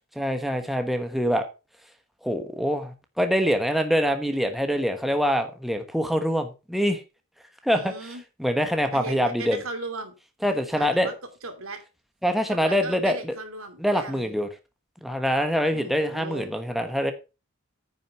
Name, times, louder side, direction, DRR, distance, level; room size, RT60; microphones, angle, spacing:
voice 1, 0.2-1.5 2.2-7.0 7.6-7.9 8.4-9.6 10.4-11.1 12.2-13.3 13.8-14.5 15.0-17.1, equal, ahead, 6 dB, 1.1 m, -24 dB
voice 2, 7.7-8.2 8.9-10.1 10.7-11.1 11.4-11.8 12.5-14.3 15.7-16.5, right 3 dB, 70° right, 6 dB, 2.6 m, -37 dB
9.5 x 6.4 x 5.4 m, 0.30 s
head